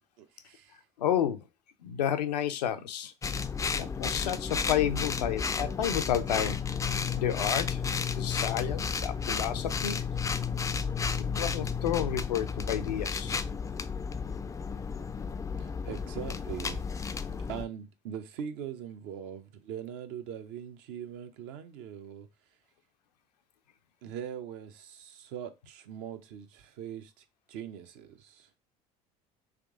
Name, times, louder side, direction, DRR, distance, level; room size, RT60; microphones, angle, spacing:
voice 1, 0.2-0.8 15.6-17.2 17.5-22.3 24.0-28.5, right 9 dB, 65° right, 0.7 m, -42 dB
voice 2, 1.0-1.5 1.8-3.1 3.8-6.6 7.2-7.8 8.2-10.1 11.3-13.4, left 10 dB, 85° left, 0.5 m, -31 dB
sound 1, 3.2-17.6, left 6 dB, 15° left, 0.3 m, -32 dB
3.6 x 2.9 x 3.6 m
hypercardioid pair, 70°, 21 cm